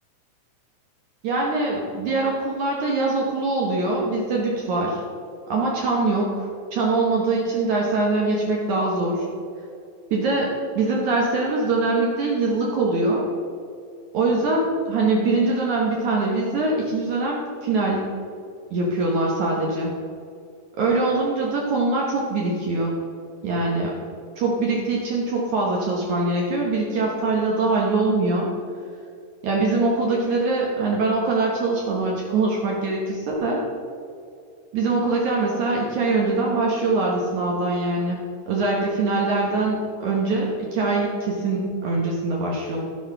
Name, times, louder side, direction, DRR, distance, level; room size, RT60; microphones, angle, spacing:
voice 1, 1.2-5.0 5.5-9.3 10.1-13.3 14.1-18.1 18.7-19.9 20.8-22.9 23.4-23.9 24.4-28.5 29.4-33.6 34.7-38.2 38.5-42.8, right 3 dB, 75° right, -2 dB, 1.7 m, -23 dB
12.5 x 7.4 x 5.6 m, 2.4 s
omnidirectional pair, 5.3 m